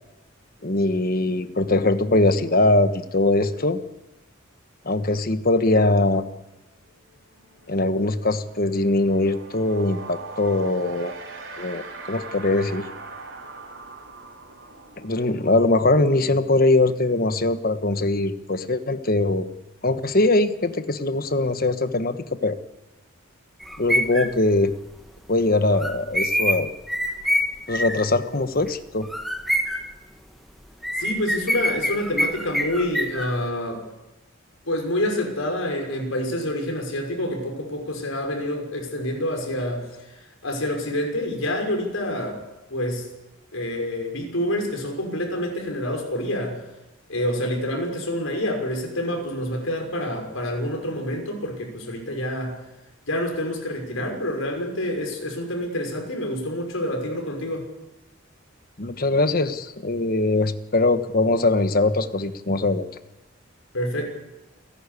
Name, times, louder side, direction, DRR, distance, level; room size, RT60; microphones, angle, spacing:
voice 1, 0.6-3.8 4.8-6.2 7.7-11.1 11.6-11.8 12.1-12.9 15.0-19.5 19.8-22.6 23.8-24.7 25.3-26.7 27.7-29.1 58.8-62.9, left 2 dB, 45° left, 10 dB, 1.3 m, -21 dB
sound 1, 6.9-7.0 7.3-17.9, right 3 dB, 75° right, 4.9 m, -41 dB
sound 2, 23.6-24.3 25.7-28.1 28.7-28.8 29.0-29.9 30.8-33.4, equal, ahead, 1.4 m, -25 dB
voice 2, 31.0-33.8 34.6-42.4 42.7-43.1 43.5-46.6 47.1-52.6 53.0-57.7 63.7-64.0, left 1 dB, 85° left, 2 dB, 6.2 m, -27 dB
29.0 x 12.0 x 8.4 m, 1.0 s
head